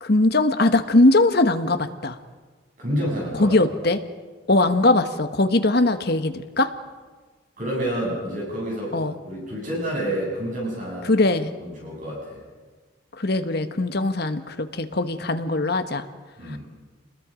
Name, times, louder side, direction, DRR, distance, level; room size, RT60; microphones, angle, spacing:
voice 1, 0.0-2.2 3.3-4.0 4.5-6.7 8.9-9.1 11.0-11.5 13.2-16.1 16.5-16.6, left 2 dB, 55° left, 8 dB, 1.3 m, -20 dB
voice 2, 2.8-3.5 7.6-9.0 9.2-11.1 11.6-12.4 16.4-16.6, equal, 40° right, -3 dB, 7.9 m, -28 dB
29.0 x 21.0 x 5.1 m, 1.4 s
head